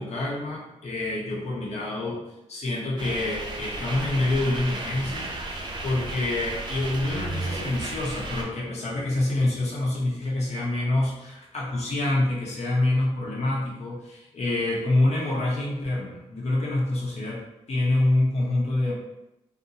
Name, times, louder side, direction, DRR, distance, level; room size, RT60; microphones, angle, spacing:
voice 1, 0.0-2.2 2.5-5.3 5.8-17.4 17.7-18.9, left 2 dB, 65° left, -3 dB, 0.8 m, -26 dB
sound 1, 3.0-8.4, right 2 dB, 40° right, 0.5 m, -34 dB
2.6 x 2.1 x 2.8 m, 0.91 s
cardioid pair, 95°, 12 cm